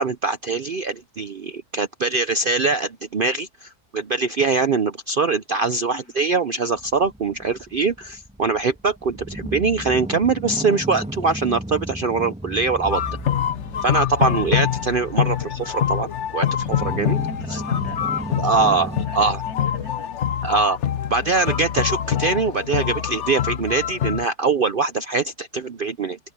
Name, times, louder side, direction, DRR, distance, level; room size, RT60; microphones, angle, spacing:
voice 1, 0.0-13.0 13.8-17.2 17.5-17.6 18.4-19.4 20.4-20.8 21.1-26.2, right 4 dB, 50° right, 0.6 m, -23 dB
sound 1, 6.8-19.1, right 1 dB, 5° right, 1.6 m, -34 dB
sound 2, 12.9-24.3, left 10 dB, 55° left, 1.1 m, -25 dB
voice 2, 14.3-14.9 17.3-20.1 21.2-21.6, left 1 dB, 75° left, 8.5 m, -41 dB
open air
omnidirectional pair, 1.6 m